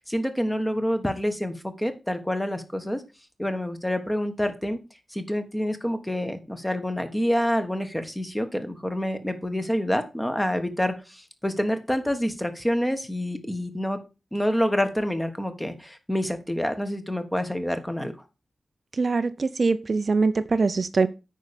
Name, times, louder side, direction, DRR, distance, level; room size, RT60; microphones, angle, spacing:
voice 1, 0.0-3.0 3.4-4.8 5.1-14.0 14.3-18.1, equal, 10° left, 1.3 m, -27 dB
voice 2, 18.9-21.1, right 4 dB, 45° right, 0.5 m, -23 dB
9.0 x 5.6 x 5.1 m
wide cardioid pair, 125°, 0 cm